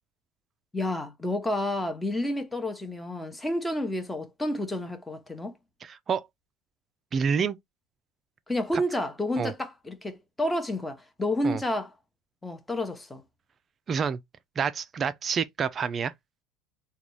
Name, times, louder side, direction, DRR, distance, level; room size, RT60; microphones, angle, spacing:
voice 1, 0.7-5.5 8.5-11.9 12.4-13.2, left 1 dB, 10° left, 0.7 m, -30 dB
voice 2, 5.8-6.3 7.1-7.6 8.7-8.8 9.4-9.5 11.4-11.6 13.9-14.2 14.6-16.1, right 6 dB, 25° right, 0.3 m, -28 dB
3.8 x 2.3 x 3.1 m
cardioid pair, 145°, 0 cm